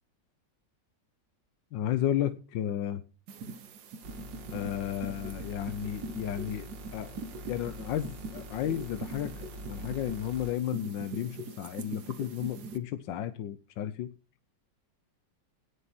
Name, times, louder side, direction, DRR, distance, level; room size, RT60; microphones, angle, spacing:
voice 1, 1.7-3.0 4.5-7.1 7.5-14.1, left 11 dB, 85° left, 11 dB, 1.5 m, -33 dB
sound 1, 3.3-12.8, right 3 dB, 65° right, 1.6 m, -43 dB
sound 2, 4.0-10.5, equal, 80° right, 2.7 m, -45 dB
18.0 x 6.7 x 4.4 m, 0.34 s
omnidirectional pair, 1.9 m